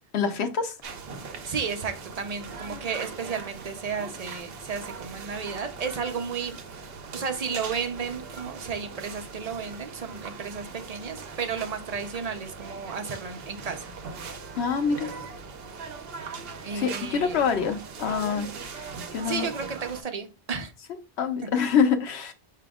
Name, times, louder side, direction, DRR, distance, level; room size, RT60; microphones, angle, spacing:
voice 1, 0.1-0.7 14.5-15.1 16.7-19.5 21.2-22.3, left 6 dB, 90° left, 7 dB, 1.0 m, -26 dB
sound 1, 0.8-20.0, right 5 dB, 70° right, 0.9 m, -40 dB
voice 2, 1.4-6.6 7.1-13.9 16.6-17.4 19.2-20.7, right 6 dB, 45° right, 6 dB, 0.7 m, -33 dB
4.9 x 2.8 x 3.5 m, 0.29 s
omnidirectional pair, 1.1 m